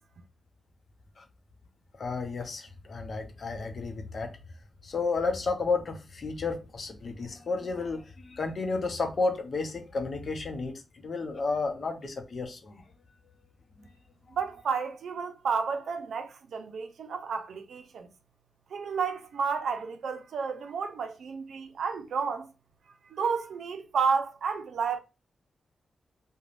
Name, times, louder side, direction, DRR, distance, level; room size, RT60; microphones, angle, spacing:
voice 1, 1.9-4.3 4.8-12.8 13.8-13.9, left 3 dB, 60° left, 0.6 m, -32 dB
voice 2, 14.3-18.1 18.7-22.5 23.1-25.0, right 5 dB, 80° right, 0.4 m, -31 dB
2.5 x 2.2 x 3.2 m
cardioid pair, 70°, 0 cm